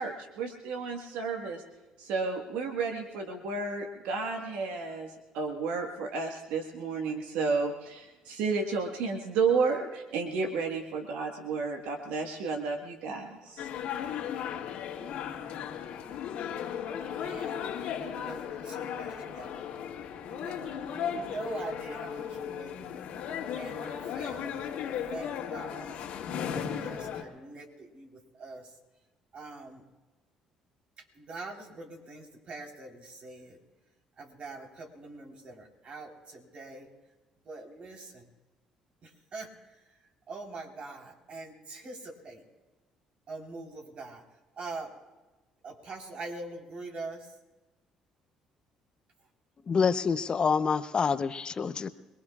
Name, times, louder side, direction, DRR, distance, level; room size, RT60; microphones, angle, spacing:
voice 1, 0.0-1.6 2.0-13.7, right 4 dB, 80° right, 3 dB, 1.5 m, -32 dB
sound 1, 13.6-27.2, left 8 dB, 75° left, 2.0 m, -36 dB
voice 2, 16.9-17.6 18.0-19.6 20.2-23.0 23.5-24.7 25.1-25.9 26.5-28.1 28.4-28.7 29.3-29.8 31.2-33.6 34.2-36.9 37.5-38.2 39.0-39.5 40.3-42.4 43.3-44.2 44.6-44.9 45.6-47.3, right 3 dB, 50° right, 1 dB, 3.9 m, -43 dB
voice 3, 49.7-51.9, left 5 dB, 40° left, 12 dB, 0.8 m, -27 dB
27.0 x 20.5 x 2.4 m, 1.1 s
supercardioid pair, 65°, 2 cm